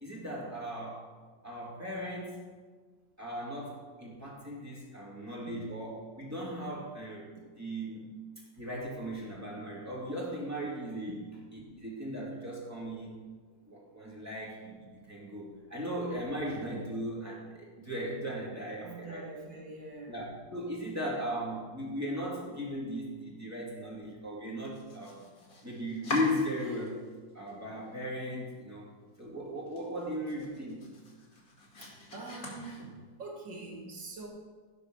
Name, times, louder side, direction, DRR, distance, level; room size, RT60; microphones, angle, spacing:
voice 1, 0.0-1.1 1.4-2.5 3.2-7.3 7.6-8.1 8.6-11.2 11.5-13.2 13.7-19.3 20.1-25.3 25.6-27.0 27.3-28.9 29.2-30.8, equal, 10° right, -4 dB, 2.7 m, -37 dB
voice 2, 18.8-20.3 32.1-34.3, right 3 dB, 80° right, -1 dB, 2.7 m, -44 dB
Domestic sounds home sounds, 24.6-27.1 27.5-28.2 28.6-28.7 29.1-29.2 29.6-33.3, left 1 dB, 50° left, 2.5 m, -43 dB
15.5 x 5.3 x 6.2 m, 1.4 s
omnidirectional pair, 2.0 m